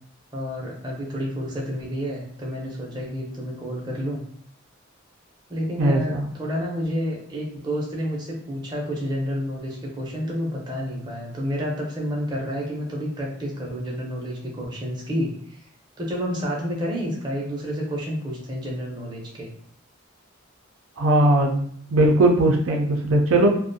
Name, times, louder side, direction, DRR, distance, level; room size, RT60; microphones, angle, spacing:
voice 1, 0.3-4.2 5.5-15.6 16.0-19.5, equal, 20° right, -3 dB, 0.5 m, -29 dB
voice 2, 5.8-6.3 21.0-23.5, right 1 dB, 85° right, 2 dB, 0.4 m, -19 dB
2.4 x 2.1 x 2.6 m, 0.63 s
head